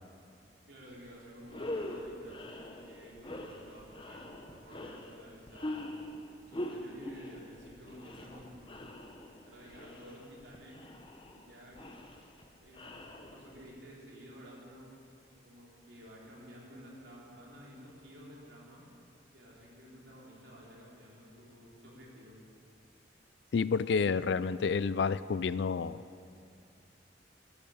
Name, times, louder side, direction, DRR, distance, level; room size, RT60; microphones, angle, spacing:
voice 1, 0.7-6.0 6.5-8.8 9.4-10.8 11.3-11.8 12.6-14.9 15.4-18.8 19.3-22.4, equal, 85° right, -4 dB, 3.7 m, -52 dB
sound 1, 0.9-1.1 1.4-13.8, left 1 dB, 30° left, 1.1 m, -43 dB
voice 2, 23.5-26.0, left 5 dB, 70° left, 17 dB, 0.4 m, -29 dB
12.5 x 12.5 x 7.2 m, 2.5 s
head